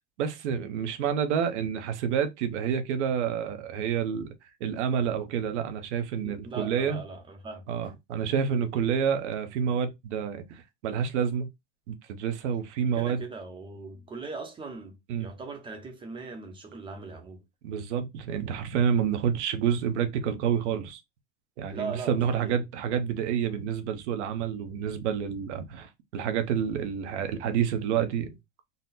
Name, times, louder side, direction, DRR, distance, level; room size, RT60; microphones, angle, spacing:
voice 1, 0.2-4.3 4.6-7.0 7.7-11.5 11.9-13.2 15.1-15.3 17.6-21.0 21.6-28.4, right 8 dB, 80° right, 1.0 m, -28 dB
voice 2, 6.2-7.7 12.9-17.4 21.7-22.6, right 4 dB, 15° right, 0.7 m, -40 dB
4.1 x 2.1 x 4.0 m
supercardioid pair, 160°, 35 cm